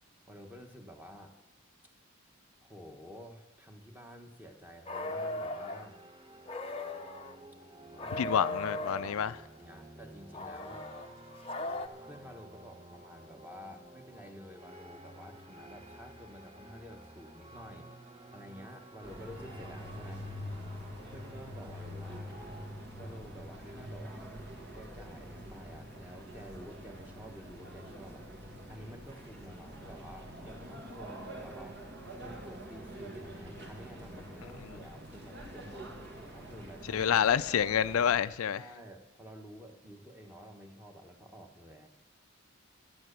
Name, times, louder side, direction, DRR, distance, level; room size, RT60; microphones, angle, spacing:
voice 1, 0.3-1.3 2.6-6.0 8.0-8.4 8.7-10.9 12.0-17.9 18.3-20.3 21.1-22.4 23.0-24.3 24.7-28.3 28.7-31.8 32.2-35.9 36.2-37.1 38.5-41.9, equal, 10° right, 1.3 m, -51 dB
sound 1, 4.9-5.8 6.4-7.3 8.0-9.2 10.3-11.9, left 2 dB, 25° left, 0.7 m, -38 dB
sound 2, 4.9-22.7, right 1 dB, 25° right, 1.1 m, -52 dB
voice 2, 8.2-9.4 34.7-34.8 36.9-38.6, left 8 dB, 85° left, 0.4 m, -28 dB
sound 3, 19.0-38.2, equal, 55° right, 2.0 m, -45 dB
11.0 x 11.0 x 6.7 m
head